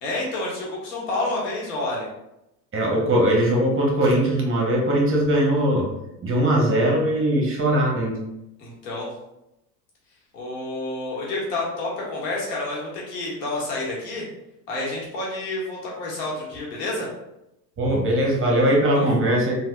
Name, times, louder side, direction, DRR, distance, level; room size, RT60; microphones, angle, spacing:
voice 1, 0.0-2.1 8.6-9.1 10.3-14.2 14.7-17.1 18.9-19.0, left 2 dB, 75° left, -4 dB, 1.4 m, -29 dB
voice 2, 2.7-5.9 6.2-8.2 17.8-19.6, right 1 dB, 25° right, -2 dB, 1.0 m, -20 dB
3.4 x 2.5 x 2.3 m, 0.87 s
hypercardioid pair, 85°, 49 cm